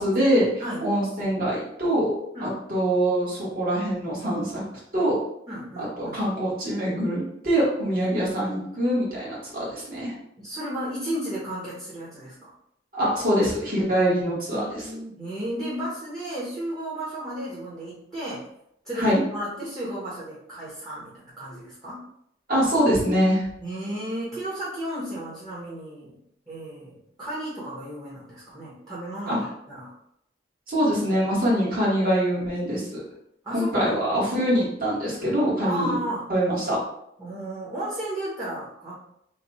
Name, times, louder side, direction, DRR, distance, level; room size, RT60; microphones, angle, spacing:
voice 1, 0.0-0.5 0.8-4.6 4.9-5.2 5.8-10.1 12.9-14.8 19.0-19.2 22.5-23.4 29.3-29.4 30.7-33.0 33.5-36.0 36.3-36.8, equal, 50° right, -6 dB, 1.4 m, -24 dB
voice 2, 5.5-6.2 10.4-12.5 14.5-18.5 18.8-22.0 23.6-26.2 26.5-29.9 33.4-34.0 35.6-36.3 37.2-38.9, right 1 dB, 20° right, -9 dB, 0.9 m, -33 dB
3.2 x 2.2 x 4.0 m, 0.75 s
head